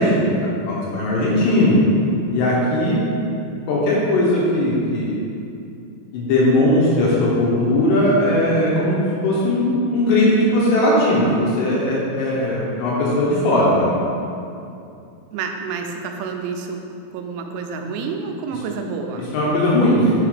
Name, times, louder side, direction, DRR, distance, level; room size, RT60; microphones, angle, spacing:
voice 1, 0.0-1.8 2.3-3.0 3.7-5.3 6.1-13.9 19.3-20.1, left 1 dB, 75° left, -5 dB, 3.1 m, -18 dB
voice 2, 15.3-16.8 17.1-19.3, right 5 dB, 85° right, 4 dB, 2.9 m, -29 dB
6.9 x 3.8 x 4.9 m, 2.6 s
omnidirectional pair, 5.2 m